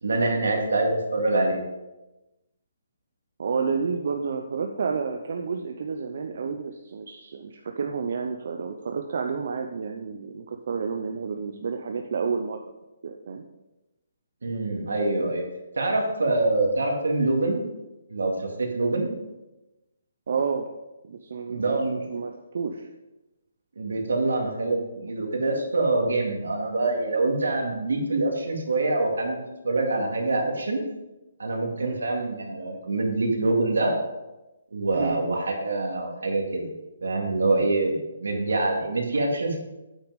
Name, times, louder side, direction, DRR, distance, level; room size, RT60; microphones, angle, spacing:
voice 1, 0.0-1.6 14.4-15.4 15.7-17.6 18.1-19.1 21.5-21.9 23.8-29.4 29.6-30.8 31.4-33.9 34.7-36.7 37.0-39.6, right 2 dB, 85° right, 1 dB, 2.2 m, -25 dB
voice 2, 3.4-12.6 13.0-13.4 20.3-20.7 21.0-22.9 31.8-32.0 34.9-35.2, right 5 dB, 60° right, 4 dB, 0.7 m, -30 dB
8.4 x 6.1 x 5.2 m, 1.0 s
hypercardioid pair, 155°, 0 cm